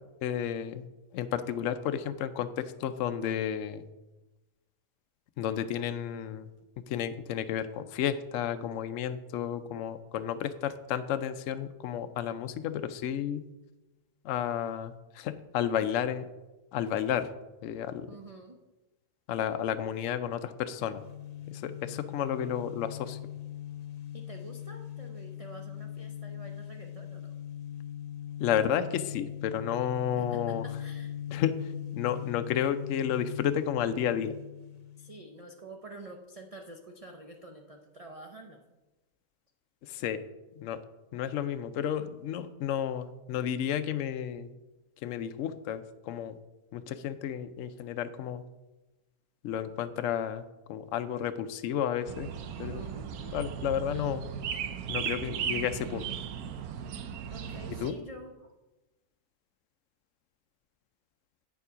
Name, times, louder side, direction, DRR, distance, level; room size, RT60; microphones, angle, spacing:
voice 1, 0.2-0.8 1.1-3.9 5.4-6.5 6.9-13.5 14.2-16.2 16.7-17.3 17.6-18.1 19.3-21.0 21.5-23.2 28.4-30.6 31.3-34.3 39.8-40.2 40.6-40.8 41.1-44.5 45.0-46.4 46.7-48.4 49.4-50.4 50.7-52.3 52.6-52.8 53.2-54.3 54.9-56.0 57.8-58.0, left 9 dB, 65° left, 9 dB, 0.8 m, -32 dB
voice 2, 18.1-18.6 24.1-27.3 30.2-31.2 35.0-38.6 52.6-53.1 57.3-58.5, right 2 dB, 45° right, 2 dB, 0.4 m, -48 dB
sound 1, 20.8-35.3, left 10 dB, 40° left, 0.6 m, -40 dB
sound 2, 52.1-57.9, right 8 dB, 75° right, 1.1 m, -36 dB
8.7 x 7.0 x 5.0 m, 1.1 s
omnidirectional pair, 1.6 m